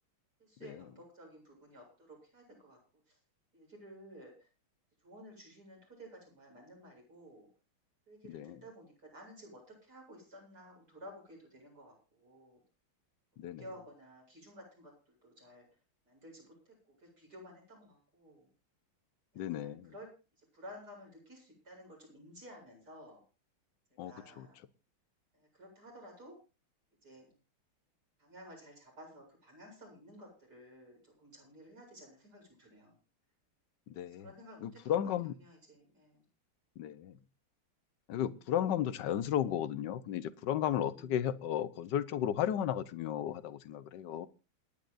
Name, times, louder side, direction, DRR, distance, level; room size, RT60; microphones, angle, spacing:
voice 1, 0.4-2.8 3.1-3.2 3.5-4.5 5.0-7.5 8.1-12.6 13.6-15.7 16.1-18.5 19.3-20.1 20.5-23.2 24.0-24.6 25.3-26.3 27.0-27.3 28.2-33.0 34.0-35.1 35.4-36.2 40.9-41.2 41.8-42.0, equal, 45° right, 8.5 m, -54 dB
voice 2, 19.4-19.9 24.0-24.1 33.9-34.2 34.6-35.3 36.8-37.2 38.1-44.3, left 10 dB, 65° left, 1.3 m, -34 dB
28.0 x 10.5 x 2.5 m
omnidirectional pair, 2.3 m